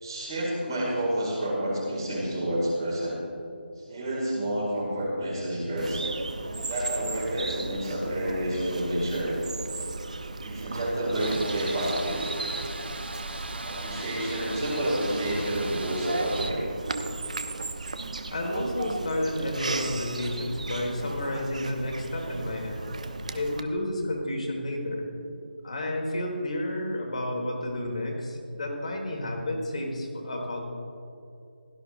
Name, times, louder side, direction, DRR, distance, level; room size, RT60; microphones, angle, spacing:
voice 1, 0.0-3.2 3.8-6.0 6.7-9.4 9.8-9.9 10.4-12.3 13.6-16.6, right 1 dB, 25° right, -3 dB, 2.2 m, -29 dB
Bird vocalization bird call bird song, 5.8-23.6, right 3 dB, 40° right, 0.6 m, -36 dB
sound 1, 11.2-16.5, right 2 dB, 65° right, 0.9 m, -39 dB
voice 2, 18.3-22.9 23.3-25.1 25.6-30.6, left 1 dB, 40° left, 0 dB, 1.7 m, -31 dB
16.5 x 12.5 x 2.6 m, 2.7 s
figure-of-eight pair, 175°, 6 cm